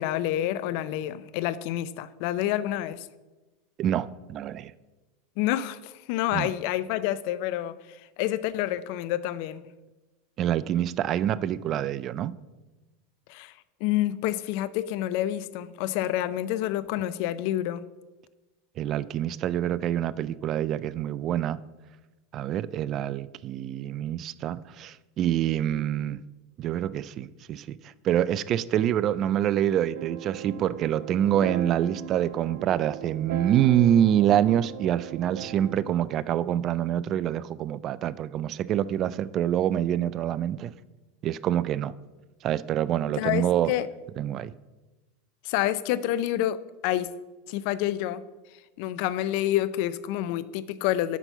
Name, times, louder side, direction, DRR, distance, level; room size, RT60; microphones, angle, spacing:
voice 1, 0.0-3.1 5.4-7.8 8.2-9.6 13.3-13.5 13.8-17.8 43.1-43.9 45.4-46.6 46.8-47.1 47.5-48.2 48.8-51.2, left 13 dB, 60° left, 16 dB, 0.4 m, -28 dB
voice 2, 3.8-4.7 6.3-6.5 10.4-12.3 18.8-21.6 22.3-26.2 26.6-40.7 41.2-41.9 42.4-43.7 44.2-44.5, right 11 dB, 45° right, 18 dB, 0.3 m, -26 dB
sound 1, 29.9-35.8, right 10 dB, 70° right, 0.7 m, -37 dB
6.0 x 5.9 x 6.8 m, 1.1 s
hypercardioid pair, 90°, 0 cm